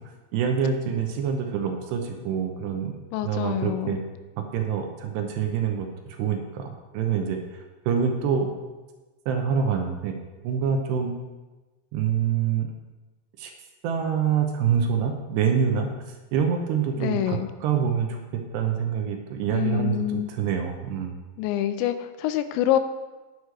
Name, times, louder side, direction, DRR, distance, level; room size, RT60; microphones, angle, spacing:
voice 1, 0.3-2.9 3.2-4.0 4.4-8.5 9.3-10.2 10.4-11.1 11.9-12.7 13.4-13.5 13.8-15.9 16.3-21.1, right 7 dB, 75° right, 4 dB, 2.7 m, -26 dB
voice 2, 3.1-4.0 17.0-17.5 19.5-20.3 21.4-22.8, left 12 dB, 85° left, 11 dB, 2.8 m, -26 dB
10.0 x 8.0 x 4.6 m, 1.2 s
omnidirectional pair, 5.3 m